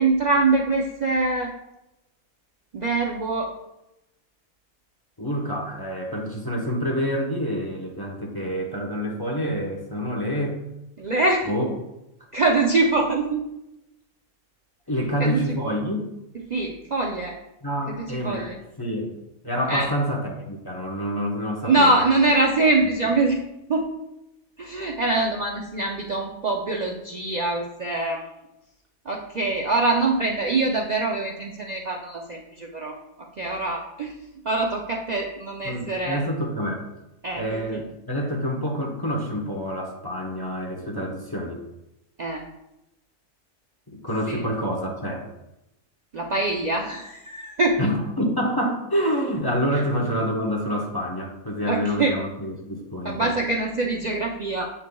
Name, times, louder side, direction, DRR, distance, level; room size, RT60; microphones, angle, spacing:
voice 1, 0.0-1.5 2.7-3.5 11.0-11.5 12.3-13.5 15.2-15.4 16.5-17.4 18.2-18.6 19.7-19.9 21.6-23.4 23.7-23.9 24.6-28.3 29.1-33.0 33.4-34.1 34.4-36.2 37.2-37.8 42.2-42.5 44.3-44.4 46.1-47.8 49.7-49.8 51.7-52.1 53.0-54.7, right 3 dB, 80° right, 0 dB, 0.3 m, -24 dB
voice 2, 5.2-10.6 11.5-11.7 14.9-16.1 17.6-18.5 18.8-19.1 19.4-22.0 35.6-36.8 37.4-41.6 43.9-45.3 47.8-53.4, equal, 20° left, -1 dB, 0.7 m, -27 dB
8.1 x 5.6 x 2.3 m, 0.89 s
omnidirectional pair, 1.5 m